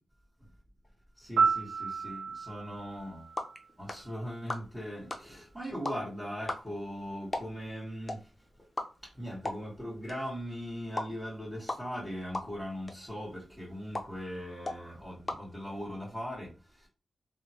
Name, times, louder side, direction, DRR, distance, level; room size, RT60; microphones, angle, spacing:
voice 1, 1.2-3.3 3.8-8.4 9.0-16.9, equal, 5° left, 1.6 m, -40 dB
Piano, 1.4-4.3 12.4-12.6, right 5 dB, 85° right, 0.4 m, -32 dB
Button lips, 2.9-16.2, left 2 dB, 35° left, 0.6 m, -42 dB
3.1 x 2.1 x 2.9 m
cardioid pair, 45°, 0 cm